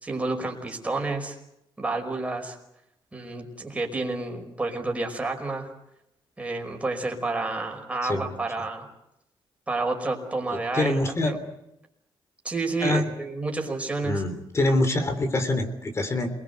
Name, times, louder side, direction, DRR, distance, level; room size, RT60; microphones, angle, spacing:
voice 1, 0.0-1.4 1.8-2.6 3.1-5.7 6.4-8.9 9.7-11.4 12.4-14.2, right 3 dB, 15° right, 2 dB, 5.2 m, -30 dB
voice 2, 10.5-11.3 12.8-13.0 14.0-16.3, left 2 dB, 30° left, 9 dB, 3.5 m, -25 dB
28.0 x 21.5 x 8.2 m, 0.83 s
wide cardioid pair, 145°, 9 cm